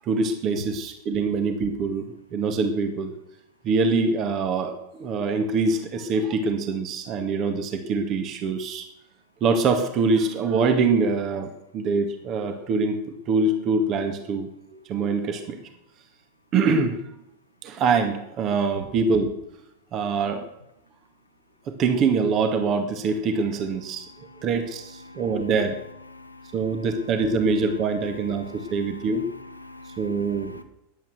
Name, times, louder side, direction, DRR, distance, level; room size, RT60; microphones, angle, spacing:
voice 1, 0.1-2.1 2.3-3.1 3.6-8.8 9.4-15.6 16.5-17.0 17.6-19.3 19.9-20.5 21.7-24.1 24.4-25.8 26.5-29.3 30.0-30.6, right 4 dB, 35° right, 7 dB, 2.1 m, -24 dB
voice 2, 26.1-26.5 28.4-29.1 29.6-30.6, left 2 dB, 85° left, 6 dB, 1.4 m, -44 dB
16.0 x 10.5 x 6.4 m, 0.82 s
figure-of-eight pair, 90°, 0 cm